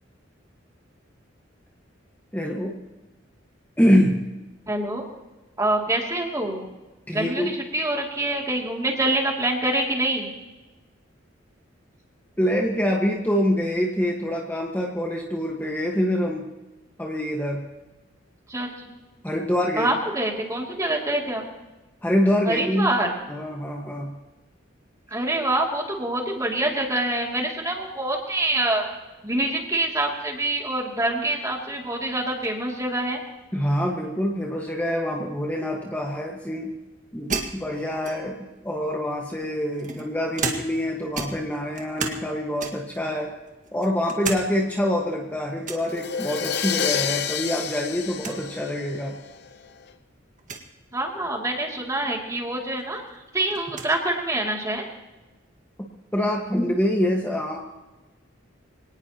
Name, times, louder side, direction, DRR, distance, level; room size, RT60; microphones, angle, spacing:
voice 1, 2.3-2.8 3.8-4.2 7.1-7.6 12.4-16.5 17.0-17.6 19.2-19.9 22.0-22.9 23.3-24.1 33.5-36.7 37.1-43.3 43.7-49.2 56.1-57.6, equal, 10° left, -1 dB, 1.6 m, -25 dB
voice 2, 4.7-5.0 5.6-6.7 7.1-10.3 18.5-18.7 19.8-21.4 22.4-23.1 25.1-28.9 29.2-33.2 50.9-54.8, right 1 dB, 15° right, 0 dB, 2.8 m, -25 dB
sound 1, 37.3-38.5 39.3-40.9 41.1-42.3 42.6-43.0 43.5-44.4 44.8-44.9 45.6-45.9 47.3-47.7 47.9-48.0 48.2-48.4 49.2-49.3 50.4-50.7 52.3-52.4 52.8-53.9, right 4 dB, 40° right, 1.8 m, -33 dB
Crash cymbal, 45.9-49.7, left 8 dB, 55° left, 0.9 m, -29 dB
25.5 x 18.5 x 3.0 m, 1.1 s
head